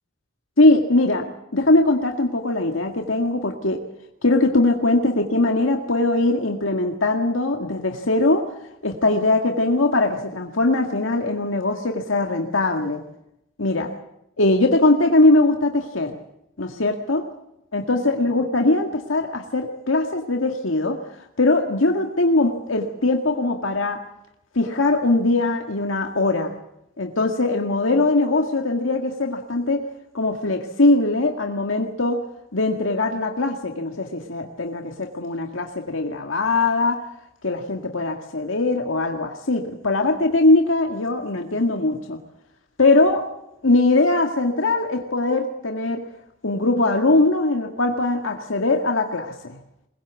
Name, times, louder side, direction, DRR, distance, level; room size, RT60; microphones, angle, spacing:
voice 1, 0.6-3.8 4.2-8.5 8.8-13.0 13.6-13.9 14.4-16.2 16.6-17.2 17.7-21.0 21.4-24.0 24.6-26.5 27.0-29.8 30.1-32.2 32.5-37.0 37.4-42.2 42.8-43.3 43.6-46.0 46.4-49.6, left 2 dB, 90° left, 3 dB, 1.9 m, -21 dB
22.0 x 20.0 x 8.3 m, 0.83 s
head